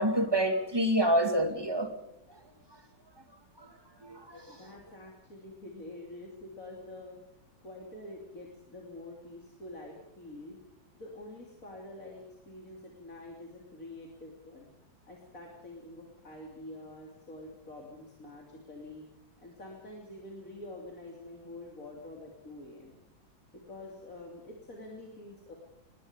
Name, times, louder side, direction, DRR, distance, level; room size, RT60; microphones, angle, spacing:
voice 1, 0.0-1.9 3.6-3.7 4.0-4.6, right 1 dB, 10° right, 2.2 m, -27 dB
voice 2, 4.5-7.2 7.6-10.6 10.9-14.7 15.0-19.1 19.4-23.0 23.7-25.5, left 1 dB, 45° left, 3.4 m, -47 dB
25.0 x 22.0 x 5.1 m
omnidirectional pair, 2.1 m